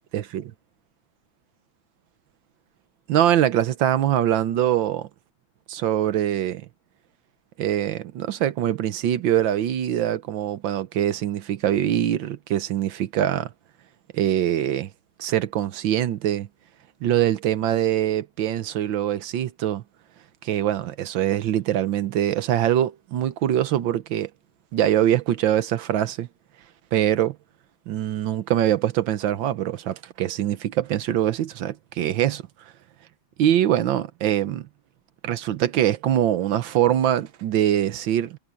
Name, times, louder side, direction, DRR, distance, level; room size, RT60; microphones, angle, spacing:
voice 1, 3.1-5.1 5.7-6.7 7.6-13.5 14.1-14.9 15.2-16.5 17.0-19.8 20.4-24.3 24.7-26.3 26.9-27.4 27.9-32.4 33.4-34.7 35.2-38.4, right 11 dB, 80° right, 1.6 m, -23 dB
omnidirectional pair, 2.1 m